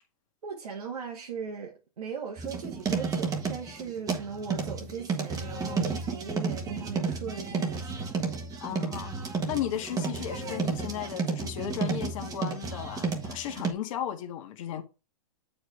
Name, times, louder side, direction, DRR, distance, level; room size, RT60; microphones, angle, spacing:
voice 1, 0.4-8.1, right 6 dB, 85° right, 1.7 m, -38 dB
sound 1, 2.4-13.7, right 4 dB, 20° right, 1.4 m, -32 dB
voice 2, 8.6-14.8, left 10 dB, 60° left, 1.6 m, -35 dB
7.7 x 4.9 x 3.3 m
hypercardioid pair, 130°, 19 cm